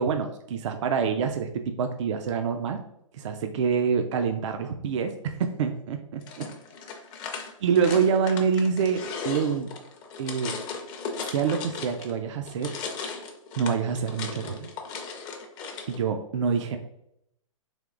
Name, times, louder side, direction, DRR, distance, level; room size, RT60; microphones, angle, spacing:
voice 1, 0.0-2.8 3.1-6.4 7.6-9.7 10.2-10.6 11.3-12.7 13.6-14.7 15.9-16.8, right 6 dB, 60° right, 6 dB, 0.4 m, -26 dB
sound 1, 6.2-12.2 12.5-16.0, left 5 dB, 25° left, 0.5 m, -37 dB
3.5 x 2.8 x 3.7 m, 0.78 s
hypercardioid pair, 135°, 18 cm